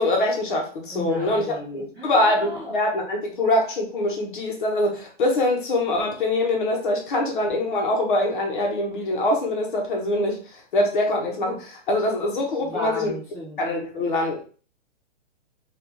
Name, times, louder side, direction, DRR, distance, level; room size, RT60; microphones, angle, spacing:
voice 1, 0.0-1.5 1.7-10.4 10.7-13.1 13.6-14.4, left 1 dB, 45° left, 1 dB, 0.8 m, -23 dB
voice 2, 0.9-2.7 12.6-13.6, left 1 dB, 15° right, -8 dB, 0.5 m, -34 dB
3.3 x 2.4 x 2.9 m, 0.39 s
hypercardioid pair, 160°, 36 cm